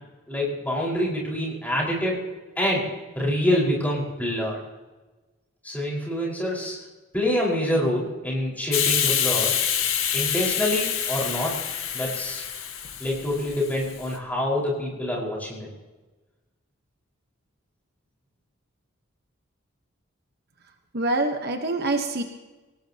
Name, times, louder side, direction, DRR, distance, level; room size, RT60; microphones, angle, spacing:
voice 1, 0.3-2.2 2.6-2.9 3.2-4.6 5.6-6.8 7.1-9.5 10.1-11.6 11.9-12.4 13.0-15.7, left 1 dB, 10° left, -4 dB, 5.1 m, -26 dB
Hiss, 8.7-14.1, left 9 dB, 80° left, 2.0 m, -26 dB
voice 2, 20.9-22.2, right 2 dB, 50° right, 4 dB, 1.2 m, -25 dB
25.5 x 18.5 x 3.0 m, 1.2 s
head